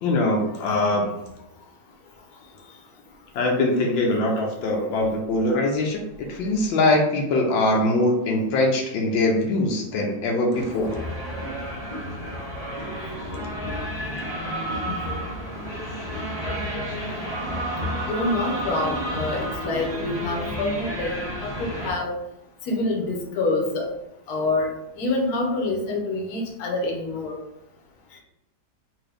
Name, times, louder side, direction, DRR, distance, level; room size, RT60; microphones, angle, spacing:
voice 1, 0.0-1.2 3.3-11.1, left 2 dB, 80° left, 0 dB, 1.4 m, -22 dB
sound 1, 10.5-21.9, equal, 35° left, 0.5 m, -31 dB
voice 2, 14.4-15.0 18.1-22.1 22.6-23.9 24.3-27.4, left 2 dB, 60° left, 0 dB, 1.1 m, -27 dB
3.7 x 2.7 x 3.3 m, 0.85 s
omnidirectional pair, 2.1 m